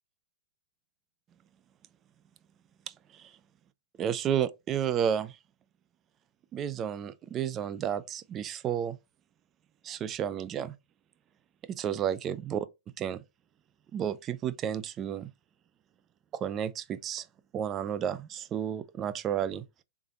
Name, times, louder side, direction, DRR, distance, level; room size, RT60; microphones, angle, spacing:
voice 1, 2.9-3.3 4.0-5.4 6.5-9.0 9.8-10.7 11.7-12.7 13.0-13.2 13.9-15.3 16.3-17.3 17.5-19.6, right 9 dB, 30° right, 0.4 m, -32 dB
3.5 x 3.4 x 3.7 m
hypercardioid pair, 110°, 0 cm